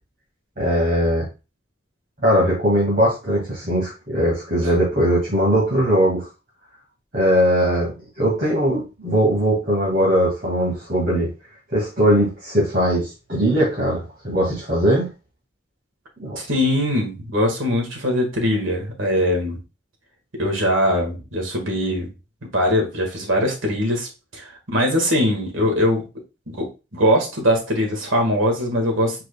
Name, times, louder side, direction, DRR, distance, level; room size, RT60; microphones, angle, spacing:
voice 1, 0.6-1.2 2.2-6.3 7.1-11.3 11.7-15.1 16.2-16.4, equal, 45° right, -5 dB, 1.9 m, -20 dB
voice 2, 16.4-19.6 20.4-22.1 22.5-26.0 26.5-29.2, equal, 85° right, 1 dB, 1.7 m, -21 dB
4.7 x 4.6 x 2.2 m, 0.29 s
head